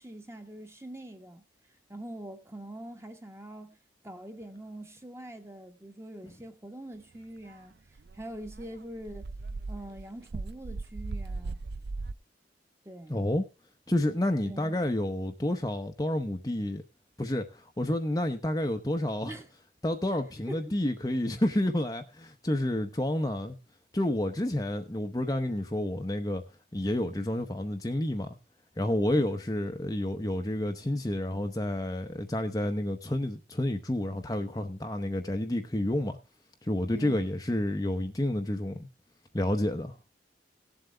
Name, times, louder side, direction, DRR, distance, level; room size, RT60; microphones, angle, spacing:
voice 1, 0.0-1.4 1.9-3.8 4.0-7.8 8.1-9.3 9.7-11.6 12.8-13.2 14.4-14.8 19.2-19.5 20.5-20.7 36.9-37.3, right 1 dB, 15° right, 1.4 m, -43 dB
Dog, 7.5-7.6 8.0-12.1, right 3 dB, 65° right, 0.5 m, -38 dB
voice 2, 13.1-13.4 13.9-16.8 17.2-19.3 19.8-23.6 23.9-26.4 26.7-28.3 28.8-36.2 36.6-38.9 39.3-39.9, left 1 dB, 20° left, 0.8 m, -29 dB
18.0 x 7.7 x 3.3 m
head